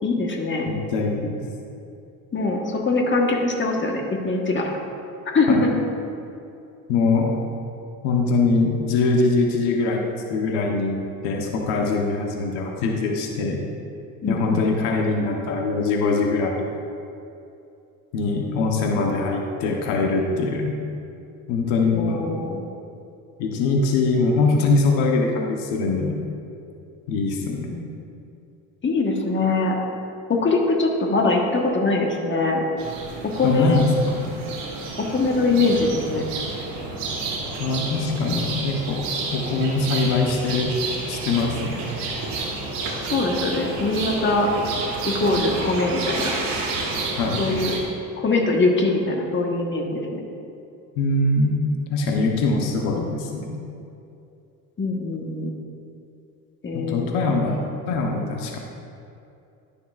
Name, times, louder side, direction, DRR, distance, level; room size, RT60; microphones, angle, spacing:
voice 1, 0.0-0.7 2.3-4.8 5.3-5.7 14.2-14.7 21.9-22.6 28.8-29.8 30.3-32.6 33.2-33.8 35.0-36.2 43.0-44.5 45.1-46.3 47.4-47.7 48.2-50.2 54.8-55.6 56.6-57.3, left 3 dB, 25° left, 1 dB, 1.3 m, -22 dB
voice 2, 0.7-1.4 5.5-5.6 6.9-7.4 8.0-13.6 14.3-16.6 18.1-20.8 21.5-22.3 23.4-26.2 27.1-27.8 33.4-34.2 37.6-39.0 39.3-40.7 41.1-41.9 47.2-47.4 51.0-51.6 51.9-53.6 56.7-58.6, left 3 dB, 75° left, 1 dB, 1.1 m, -22 dB
sound 1, 32.8-47.8, right 3 dB, 70° right, 1.8 m, -30 dB
11.5 x 6.8 x 2.5 m, 2.6 s
supercardioid pair, 75°, 42 cm